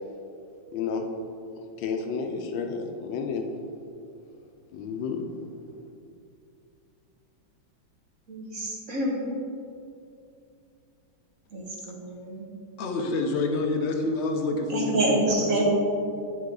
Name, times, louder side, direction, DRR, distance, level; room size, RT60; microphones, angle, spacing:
voice 1, 0.7-1.1 1.8-3.5 4.7-5.3, left 5 dB, 75° left, 4 dB, 1.4 m, -31 dB
voice 2, 8.3-9.2 11.5-12.4 14.7-15.6, right 2 dB, 50° right, -3 dB, 1.6 m, -27 dB
voice 3, 12.8-15.6, left 2 dB, 60° left, 3 dB, 0.7 m, -27 dB
8.7 x 6.4 x 3.9 m, 2.5 s
omnidirectional pair, 2.1 m